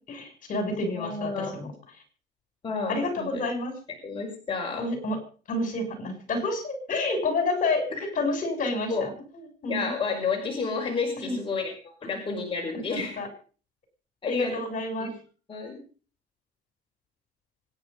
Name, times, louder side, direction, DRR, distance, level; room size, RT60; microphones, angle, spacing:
voice 1, 0.1-1.7 2.9-3.7 4.8-5.2 5.5-7.9 8.2-9.1 9.6-9.9 11.2-11.4 12.9-13.3 14.3-15.1, left 2 dB, 50° left, 6 dB, 7.1 m, -29 dB
voice 2, 0.9-1.5 2.6-3.4 4.0-4.8 8.9-9.1 9.7-13.1 14.2-14.6 15.0-15.1 15.5-15.8, left 4 dB, 30° left, 1 dB, 5.6 m, -30 dB
25.5 x 10.5 x 5.4 m, 0.41 s
cardioid pair, 110°, 17 cm